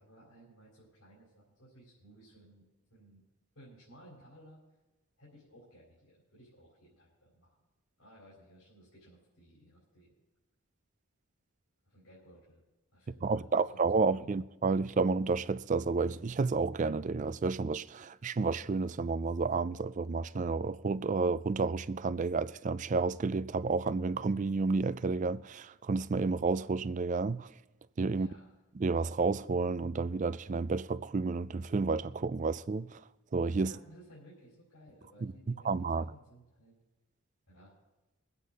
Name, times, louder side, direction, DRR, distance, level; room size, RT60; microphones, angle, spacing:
voice 1, 0.0-2.6 2.9-3.2 3.5-4.6 5.2-7.6 8.0-10.1 11.9-12.6 12.9-14.3 28.1-28.5 33.5-35.7 36.0-36.7 37.5-37.7, equal, 75° left, 4.2 m, -57 dB
voice 2, 13.2-27.5 28.0-28.3 28.8-33.0 33.3-33.7 35.2-35.3 35.6-36.0, right 4 dB, 35° right, 0.3 m, -31 dB
22.5 x 8.3 x 4.0 m
head